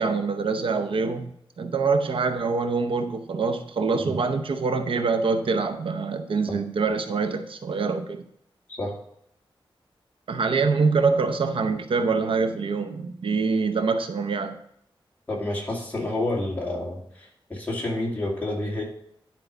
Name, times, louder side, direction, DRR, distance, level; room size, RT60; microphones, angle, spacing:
voice 1, 0.0-8.2 10.3-14.6, right 4 dB, 70° right, 7 dB, 0.7 m, -25 dB
voice 2, 15.3-18.8, left 1 dB, 20° left, -3 dB, 2.4 m, -29 dB
10.5 x 4.6 x 5.0 m, 0.72 s
wide cardioid pair, 180°, 9 cm